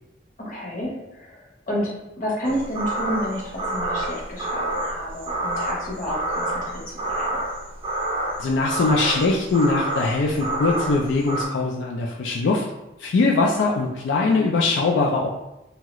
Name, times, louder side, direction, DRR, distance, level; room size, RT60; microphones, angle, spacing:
voice 1, 0.4-7.3, equal, 45° left, -4 dB, 0.9 m, -30 dB
sound 1, 2.4-11.5, right 1 dB, 30° right, 0.4 m, -28 dB
voice 2, 8.4-12.6 13.0-15.3, left 3 dB, 85° left, 0 dB, 0.3 m, -21 dB
2.8 x 2.3 x 2.9 m, 0.93 s
head